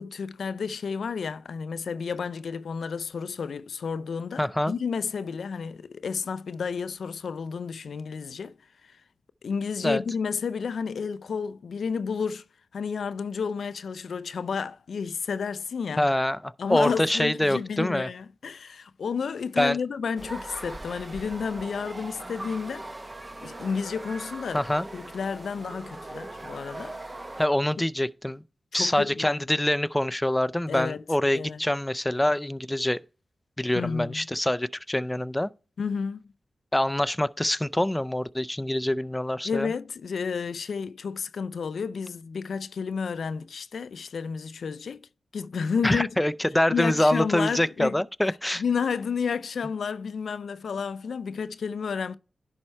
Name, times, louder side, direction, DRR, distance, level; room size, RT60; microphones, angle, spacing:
voice 1, 0.0-8.6 8.8-9.0 9.4-12.4 12.7-16.1 16.6-22.9 23.4-24.7 24.9-27.0 28.7-29.4 30.7-31.0 31.3-31.6 33.7-34.3 35.8-36.3 39.4-45.0 45.3-46.3 46.7-48.0 48.5-52.2, left 6 dB, 80° left, 0.4 m, -31 dB
voice 2, 4.4-4.7 9.8-10.0 16.0-18.1 19.6-19.8 24.5-24.9 27.4-28.4 28.7-33.0 33.6-35.5 36.7-39.7 45.8-48.6, left 1 dB, 15° left, 0.4 m, -25 dB
sound 1, 20.2-27.5, right 2 dB, 30° right, 0.9 m, -40 dB
11.0 x 4.4 x 4.4 m
cardioid pair, 45°, 0 cm